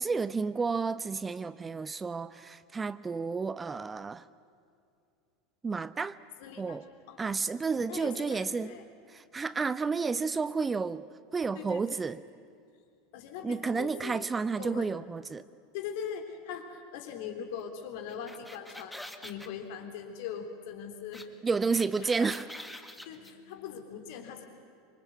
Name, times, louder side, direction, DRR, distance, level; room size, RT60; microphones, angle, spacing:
voice 1, 0.0-4.3 5.6-6.2 6.6-6.8 7.2-8.7 9.1-11.0 11.3-12.2 13.4-15.4 21.4-22.5, right 4 dB, 15° right, 16 dB, 0.6 m, -31 dB
voice 2, 6.4-6.8 7.1-7.4 7.9-8.8 11.5-12.0 13.1-14.2 14.6-14.9 15.7-21.3 21.9-22.3 23.0-24.5, left 7 dB, 55° left, 5 dB, 3.4 m, -41 dB
sound 1, 18.1-19.5 21.1-21.2 21.5-23.3, left 1 dB, 5° left, 1.7 m, -45 dB
26.0 x 25.0 x 8.3 m, 2.4 s
figure-of-eight pair, 80°, 0 cm